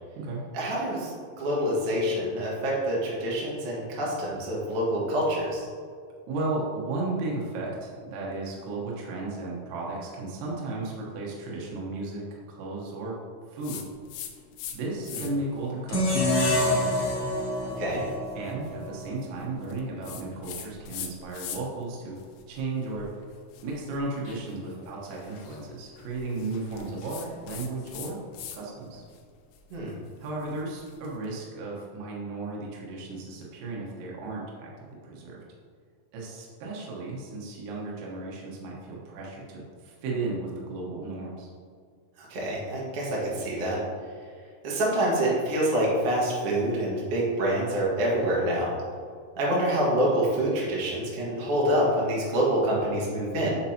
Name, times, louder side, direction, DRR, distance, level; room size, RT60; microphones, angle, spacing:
voice 1, 0.5-5.7 15.1-15.2 17.8-18.0 29.7-29.9 42.2-43.8 44.6-48.7 49.4-53.5, right 1 dB, 55° right, -5 dB, 1.7 m, -26 dB
voice 2, 6.3-13.2 13.5-13.8 14.7-16.9 18.4-22.2 22.5-23.1 23.6-28.2 28.5-29.0 30.2-35.4 36.1-41.5, right 2 dB, 80° right, -4 dB, 3.5 m, -34 dB
sound 1, 13.6-14.8 15.0-15.5 16.1-21.8 22.2-28.6 28.9-31.1, left 8 dB, 80° left, 2.8 m, -43 dB
sound 2, 15.9-19.1, left 1 dB, 50° left, 1.3 m, -26 dB
8.4 x 6.8 x 2.9 m, 2.1 s
omnidirectional pair, 5.2 m